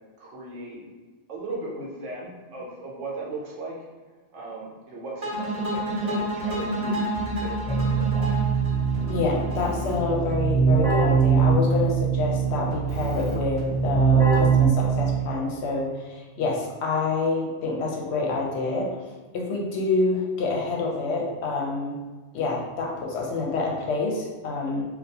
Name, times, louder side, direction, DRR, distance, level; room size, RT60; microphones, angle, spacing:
voice 1, 0.2-0.8 1.3-3.7 4.3-8.4, right 2 dB, 75° right, -3 dB, 0.9 m, -37 dB
sound 1, 5.2-10.3, right 1 dB, 40° right, 0.6 m, -30 dB
Keyboard (musical), 7.1-15.4, right 5 dB, 5° left, 0.5 m, -23 dB
voice 2, 9.1-18.9 19.3-22.0 22.3-24.8, left 3 dB, 70° left, -2 dB, 0.8 m, -27 dB
2.3 x 2.3 x 2.7 m, 1.3 s
omnidirectional pair, 1.3 m